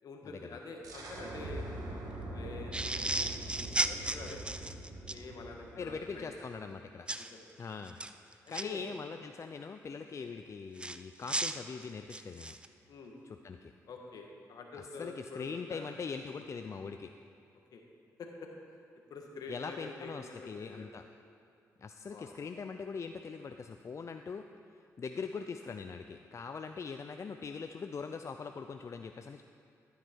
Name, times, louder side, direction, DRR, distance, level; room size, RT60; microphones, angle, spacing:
voice 1, 0.0-4.4 5.1-6.4 7.2-7.5 8.6-8.8 9.1-9.2 10.2-10.3 12.9-13.1 13.9-15.9 17.7-17.8 18.2-18.5 19.1-20.9 22.1-22.3, left 3 dB, 70° left, 1 dB, 1.6 m, -47 dB
sound 1, 0.8-6.3, right 2 dB, 65° right, 1.8 m, -43 dB
sound 2, 2.7-5.2 7.1-7.3 7.9-8.6 10.8-12.7, right 2 dB, 15° right, 0.6 m, -35 dB
voice 2, 5.8-7.1 7.6-8.0 8.5-12.6 13.4-13.7 15.0-17.1 19.5-21.0 21.8-24.4 25.0-29.4, left 5 dB, 45° left, 7 dB, 0.5 m, -42 dB
13.0 x 9.4 x 4.6 m, 2.4 s
supercardioid pair, 55°, 7 cm